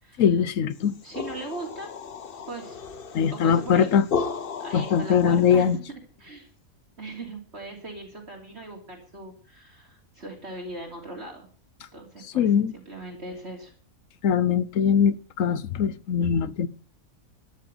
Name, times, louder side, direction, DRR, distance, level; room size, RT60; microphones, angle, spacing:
voice 1, 0.2-1.0 3.1-4.1 4.7-5.8 12.3-12.7 14.2-16.7, left 7 dB, 70° left, 1.2 m, -21 dB
sound 1, 0.8-5.7, left 5 dB, 45° left, 1.0 m, -34 dB
voice 2, 1.0-1.9 2.5-2.8 3.3-3.9 4.6-5.7 6.2-6.5 7.0-11.5 11.9-13.7, right 2 dB, 50° right, 3.3 m, -39 dB
13.0 x 9.9 x 8.0 m
omnidirectional pair, 1.5 m